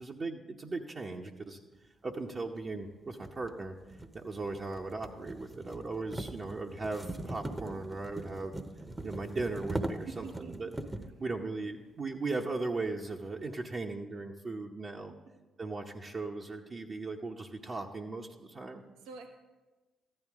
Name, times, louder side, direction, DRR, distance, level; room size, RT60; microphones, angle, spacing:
voice 1, 0.0-1.6 2.0-3.7 4.1-8.5 9.0-10.7 11.2-15.1 15.6-18.8, right 3 dB, 45° right, -1 dB, 0.9 m, -38 dB
sound 1, 2.3-2.4 3.2-11.2, right 2 dB, 20° right, 0.9 m, -41 dB
voice 2, 10.1-10.7 15.1-15.2 19.0-19.3, right 5 dB, 85° right, 3 dB, 1.1 m, -46 dB
14.0 x 11.0 x 3.6 m, 1.2 s
supercardioid pair, 55°, 0 cm